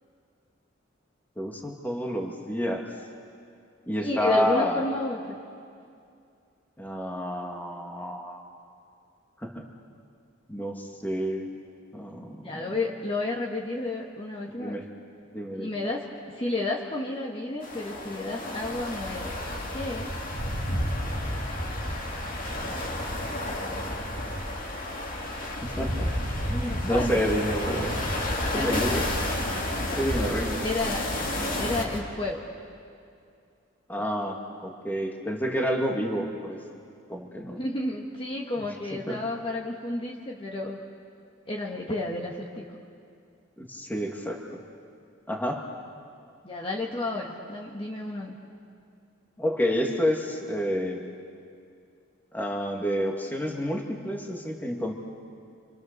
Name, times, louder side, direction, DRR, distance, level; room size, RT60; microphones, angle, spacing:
voice 1, 1.4-2.9 3.9-4.8 6.8-8.4 9.4-9.7 10.5-11.5 11.9-12.8 14.6-14.9 15.3-15.7 22.2-22.3 22.6-22.8 25.6-26.1 26.5-28.0 28.5-29.0 30.0-30.6 33.9-34.4 34.6-36.6 37.1-37.6 39.1-39.2 43.6-44.4 45.3-45.7 49.4-51.0 52.3-54.9, equal, 10° left, 1 dB, 2.1 m, -29 dB
voice 2, 4.0-5.4 12.4-14.8 15.6-19.3 19.7-20.1 26.7-27.3 28.5-29.1 29.7-30.1 30.6-31.1 31.6-32.4 37.6-40.8 41.5-42.7 46.4-48.4, left 2 dB, 30° left, -2 dB, 1.8 m, -31 dB
sound 1, 17.6-32.0, left 1 dB, 45° left, 2.6 m, -31 dB
29.0 x 26.5 x 6.8 m, 2.4 s
head